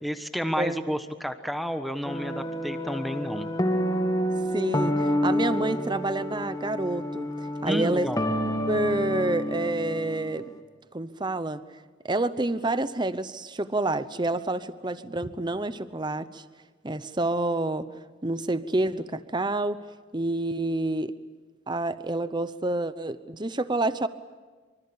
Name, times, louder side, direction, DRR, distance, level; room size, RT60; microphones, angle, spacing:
voice 1, 0.0-3.5 7.6-8.3, equal, ahead, 8 dB, 1.2 m, -31 dB
sound 1, 2.0-10.4, equal, 20° left, 2.0 m, -29 dB
voice 2, 4.5-8.1 8.7-10.5 10.9-11.6 12.0-16.4 16.8-17.9 18.2-19.8 20.1-21.1 21.7-24.1, right 2 dB, 20° right, 13 dB, 0.8 m, -28 dB
25.0 x 25.0 x 8.7 m, 1.4 s
head